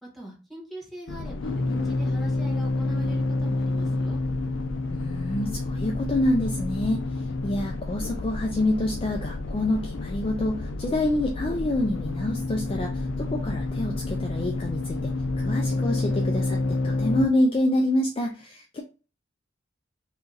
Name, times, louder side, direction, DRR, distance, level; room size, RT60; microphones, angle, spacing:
voice 1, 0.0-4.2, right 2 dB, ahead, -4 dB, 1.3 m, -42 dB
sound 1, 1.1-17.3, left 2 dB, 80° left, 0.5 m, -29 dB
voice 2, 4.9-7.0 7.4-18.8, left 1 dB, 30° left, 1 dB, 0.4 m, -27 dB
2.8 x 2.6 x 3.8 m, 0.33 s
head